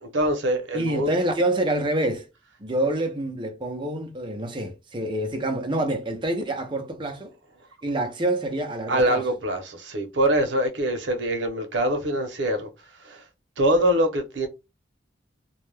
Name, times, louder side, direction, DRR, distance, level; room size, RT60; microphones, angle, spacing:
voice 1, 0.0-1.1 8.9-12.7 13.0-13.2 13.6-14.5, right 1 dB, 85° right, 0.7 m, -24 dB
voice 2, 0.7-2.3 2.6-7.3 7.8-9.2, right 1 dB, 25° right, 0.5 m, -27 dB
2.3 x 2.1 x 3.1 m
head